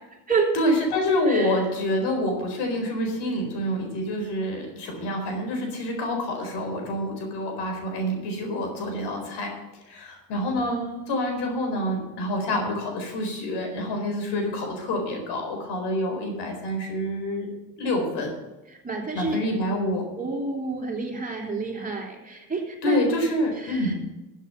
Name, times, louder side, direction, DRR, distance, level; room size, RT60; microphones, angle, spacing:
voice 1, 0.5-9.5 9.9-10.8 11.1-17.5 17.8-18.3 19.1-20.0 22.8-23.9, left 1 dB, 85° left, 3 dB, 4.3 m, -27 dB
voice 2, 1.3-1.6 10.6-11.1 18.8-19.4 20.2-23.0 23.6-23.9, right 4 dB, 20° right, 1 dB, 3.3 m, -29 dB
13.0 x 8.1 x 5.8 m, 1.0 s
cardioid pair, 95°, 40 cm